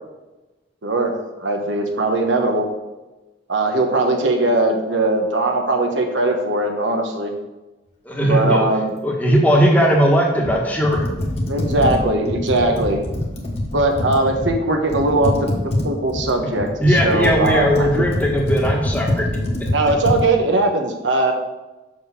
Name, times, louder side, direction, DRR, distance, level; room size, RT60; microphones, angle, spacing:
voice 1, 0.8-2.7 3.5-7.3 8.3-8.9 11.4-13.0 13.7-18.0 19.7-21.3, right 2 dB, 80° right, 4 dB, 1.1 m, -20 dB
voice 2, 8.0-8.7 9.0-11.1 16.8-19.3 19.6-19.7, equal, 10° left, -1 dB, 1.3 m, -18 dB
Computer keyboard, 10.4-14.6 14.9-20.2, left 1 dB, 35° left, 1.2 m, -24 dB
6.1 x 5.1 x 6.8 m, 1.1 s
head